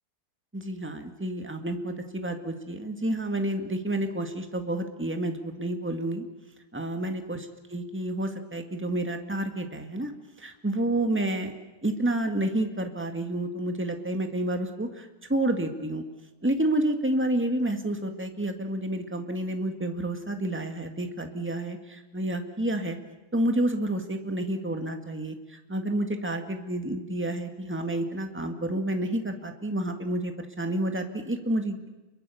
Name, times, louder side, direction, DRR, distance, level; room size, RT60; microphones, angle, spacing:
voice 1, 0.5-6.2 6.7-10.1 10.4-11.5 11.8-16.0 16.4-23.0 23.3-31.9, right 1 dB, 5° right, 6 dB, 1.8 m, -29 dB
28.5 x 22.5 x 7.1 m, 1.1 s
omnidirectional pair, 2.4 m